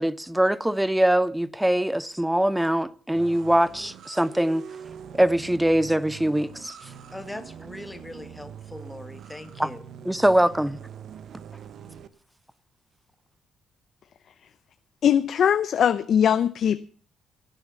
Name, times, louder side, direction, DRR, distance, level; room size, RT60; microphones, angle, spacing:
voice 1, 0.0-4.6 5.1-6.8 9.6-9.7 10.1-10.8, right 1 dB, 5° right, 0.7 m, -22 dB
sound 1, 3.1-12.1, right 8 dB, 65° right, 1.2 m, -43 dB
voice 2, 7.1-9.8, left 1 dB, 10° left, 1.7 m, -40 dB
voice 3, 15.0-16.8, left 8 dB, 60° left, 0.6 m, -21 dB
16.5 x 9.1 x 6.8 m
cardioid pair, 90°, 0 cm